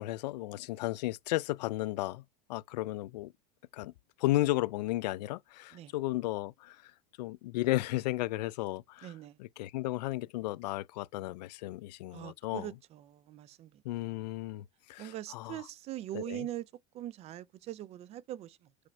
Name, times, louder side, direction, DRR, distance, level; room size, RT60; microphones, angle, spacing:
voice 1, 0.0-2.2 2.5-3.3 3.7-3.9 4.2-6.9 7.2-9.1 9.4-12.7 13.8-15.6 16.1-16.5, left 17 dB, 85° left, 0.4 m, -34 dB
voice 2, 9.0-9.4 12.1-14.3 15.0-18.7, right 13 dB, 30° right, 0.4 m, -42 dB
5.0 x 4.4 x 4.4 m
supercardioid pair, 140°, 21 cm